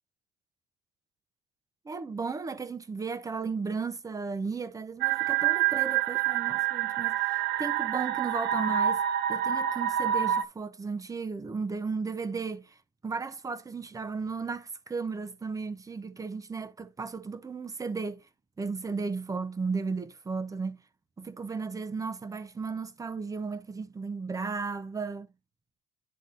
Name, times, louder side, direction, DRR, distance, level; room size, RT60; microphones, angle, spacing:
voice 1, 1.8-9.0 9.3-12.7 13.0-18.2 18.6-20.8 21.2-25.3, right 4 dB, 15° right, 0.9 m, -35 dB
sound 1, 5.0-10.4, right 11 dB, 60° right, 0.7 m, -27 dB
10.5 x 3.7 x 3.9 m
cardioid pair, 120°, 20 cm